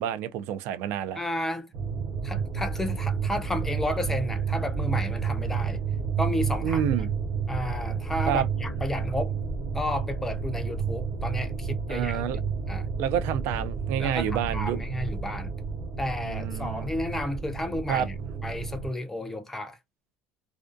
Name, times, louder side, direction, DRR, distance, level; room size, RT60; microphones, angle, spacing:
voice 1, 0.0-1.2 6.6-7.1 8.3-8.5 11.9-12.4 13.0-14.8 16.2-16.9 17.9-18.1, right 9 dB, 65° right, 0.3 m, -28 dB
voice 2, 1.1-1.7 2.2-5.8 6.2-6.9 7.5-9.4 9.7-12.3 12.7-12.9 14.0-15.5 16.0-18.1 18.4-19.8, left 1 dB, 10° left, 0.4 m, -32 dB
sound 1, 1.7-18.9, right 6 dB, 45° right, 0.9 m, -31 dB
2.4 x 2.2 x 2.5 m
cardioid pair, 145°, 4 cm